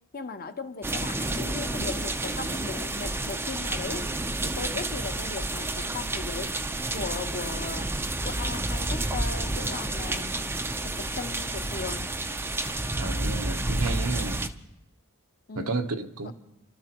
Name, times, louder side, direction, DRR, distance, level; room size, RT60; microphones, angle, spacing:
voice 1, 0.1-4.1 4.4-6.6 6.9-8.0 8.2-10.4 10.8-12.1 15.5-15.8 16.2-16.3, left 4 dB, 40° left, 0.8 m, -37 dB
sound 1, 0.8-14.5, right 2 dB, 10° right, 0.5 m, -30 dB
voice 2, 12.9-14.4 15.6-16.3, right 3 dB, 75° right, 1.0 m, -31 dB
29.0 x 13.0 x 3.0 m
head